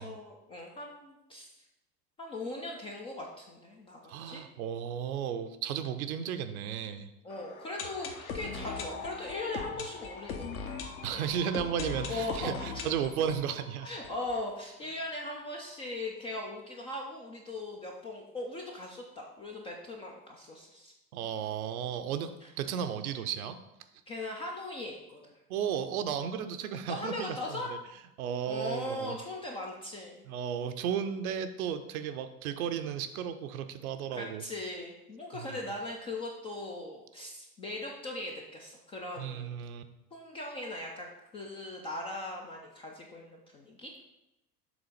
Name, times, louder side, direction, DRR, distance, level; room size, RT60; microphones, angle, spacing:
voice 1, 0.0-1.5 2.2-4.4 7.2-10.8 11.1-11.3 12.1-12.8 13.8-20.9 22.4-22.5 24.1-25.2 26.9-27.7 28.5-30.2 34.1-39.6 40.1-43.9, left 2 dB, 15° left, 0 dB, 0.3 m, -39 dB
voice 2, 4.1-7.1 11.0-13.9 21.1-23.6 25.5-27.8 28.2-29.2 30.3-34.4 35.3-35.6 39.2-39.8, right 8 dB, 60° right, 9 dB, 0.7 m, -34 dB
sound 1, 7.3-15.1 15.3-15.4 15.6-15.7 16.2-16.3, left 5 dB, 60° left, 1.1 m, -40 dB
7.0 x 3.7 x 5.0 m, 0.92 s
figure-of-eight pair, 75°, 49 cm